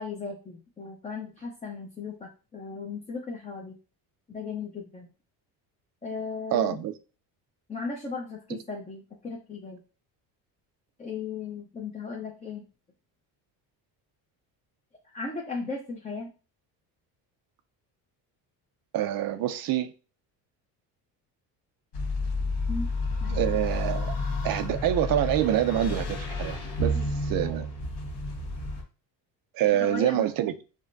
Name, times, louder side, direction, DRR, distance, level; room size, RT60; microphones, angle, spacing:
voice 1, 0.0-3.8 4.3-5.1 6.0-6.8 7.7-9.8 11.0-12.7 15.1-16.3 22.7-22.9 23.2-23.4 26.9-27.0 29.8-30.3, left 4 dB, 15° left, 0.7 m, -36 dB
voice 2, 6.5-6.9 8.5-8.6 18.9-19.9 23.3-24.2 24.4-27.0 27.2-27.7 29.5-30.5, right 12 dB, 55° right, 0.5 m, -26 dB
sound 1, 21.9-28.8, left 2 dB, 70° left, 1.6 m, -30 dB
5.0 x 2.2 x 2.6 m
cardioid pair, 100°, 42 cm